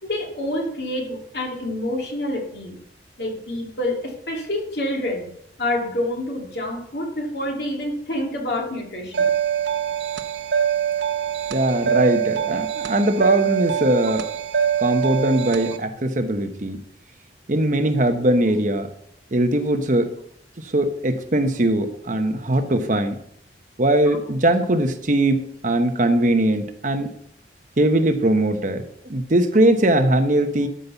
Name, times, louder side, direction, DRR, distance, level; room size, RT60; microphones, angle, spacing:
voice 1, 0.0-2.8 3.2-5.3 5.6-9.3, left 1 dB, 65° left, 0 dB, 2.9 m, -27 dB
sound 1, 9.1-15.8, right 8 dB, 85° right, 0.7 m, -24 dB
voice 2, 11.5-14.2 14.8-16.8 17.5-18.9 19.3-20.1 20.7-23.2 23.8-27.1 27.8-28.8 29.1-30.7, right 1 dB, 45° right, 8 dB, 1.0 m, -20 dB
12.5 x 5.4 x 6.9 m, 0.70 s
head